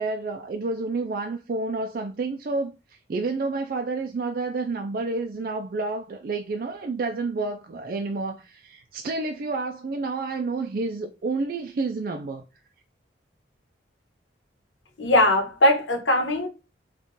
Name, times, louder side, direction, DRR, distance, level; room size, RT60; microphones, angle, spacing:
voice 1, 0.0-12.4, right 3 dB, 50° right, 0.4 m, -29 dB
voice 2, 15.0-16.5, left 1 dB, 90° left, 1.1 m, -20 dB
3.6 x 2.4 x 3.9 m
head